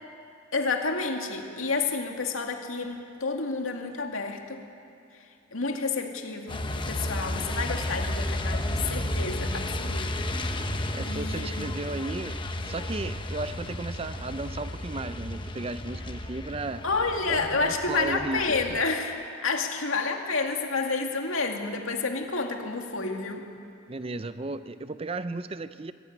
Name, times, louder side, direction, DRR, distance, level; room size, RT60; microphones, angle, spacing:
voice 1, 0.5-4.6 5.5-10.1 11.0-11.7 16.8-23.4, left 4 dB, 90° left, 3 dB, 2.3 m, -30 dB
Truck, 6.5-18.8, left 1 dB, 25° left, 1.0 m, -33 dB
voice 2, 10.9-12.4 12.6-16.8 17.3-18.4 18.7-18.8 23.9-25.9, right 2 dB, 30° right, 12 dB, 0.5 m, -35 dB
24.0 x 14.5 x 9.4 m, 2.5 s
head